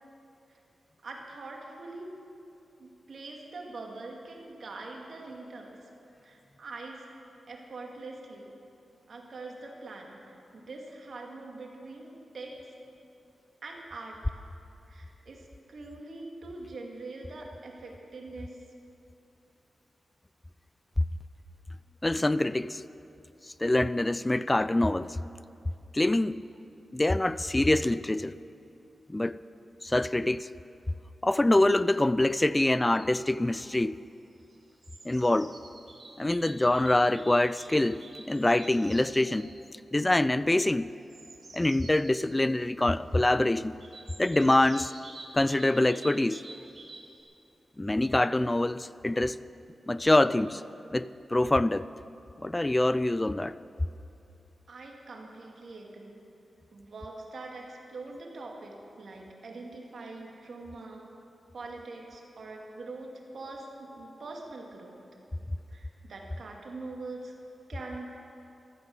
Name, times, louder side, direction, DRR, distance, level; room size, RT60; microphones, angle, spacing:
voice 1, 1.0-2.1 2.8-5.9 6.2-7.1 7.5-8.6 9.1-12.7 13.6-14.2 14.9-18.6 54.7-56.2 56.7-61.1 61.5-65.0 65.7-67.3 67.7-68.1, right 3 dB, 65° right, 2.5 m, -43 dB
voice 2, 22.0-22.8 23.6-25.2 25.9-26.4 26.9-28.4 29.1-29.4 29.8-30.5 31.2-34.0 35.0-35.5 36.2-39.5 39.9-40.9 41.5-43.7 44.2-44.9 45.3-46.5 47.8-49.4 49.9-50.6 50.9-51.9 52.4-53.6, left 1 dB, 20° left, 0.4 m, -25 dB
sound 1, 32.6-33.2 34.3-39.6 40.9-42.4 43.8-47.2, right 3 dB, 50° right, 3.8 m, -49 dB
14.5 x 13.5 x 6.6 m
supercardioid pair, 45°, 0 cm